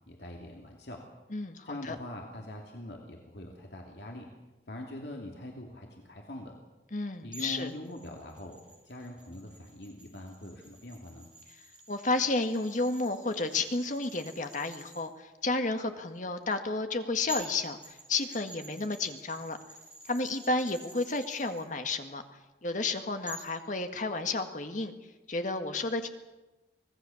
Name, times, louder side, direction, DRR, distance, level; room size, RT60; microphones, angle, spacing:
voice 1, 0.1-1.0 1.6-4.3 4.7-6.6 7.2-8.6 8.8-11.3, left 1 dB, 70° left, 0 dB, 2.9 m, -43 dB
voice 2, 1.3-2.0 6.9-7.7 11.9-19.6 20.1-22.2 22.6-24.9 25.3-26.1, left 3 dB, 45° left, 6 dB, 1.9 m, -31 dB
sound 1, 7.3-15.0 16.9-17.0 17.3-21.6 23.3-23.6, right 2 dB, 5° right, 7.9 m, -49 dB
25.5 x 18.5 x 7.2 m, 1.1 s
head